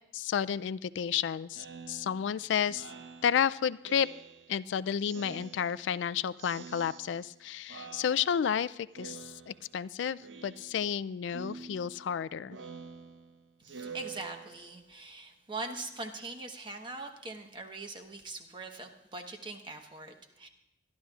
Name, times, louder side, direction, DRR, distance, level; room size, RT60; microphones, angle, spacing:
voice 1, 0.1-2.9 3.2-4.1 4.5-12.6, left 8 dB, 85° left, 18 dB, 0.3 m, -31 dB
Speech synthesizer, 1.5-4.7 5.0-6.1 6.4-7.4 7.7-8.6 8.9-9.8 10.2-11.0 11.3-14.8, right 5 dB, 90° right, 0.9 m, -48 dB
voice 2, 13.7-20.5, right 3 dB, 25° right, 4 dB, 1.1 m, -42 dB
24.0 x 11.5 x 2.4 m, 0.84 s
head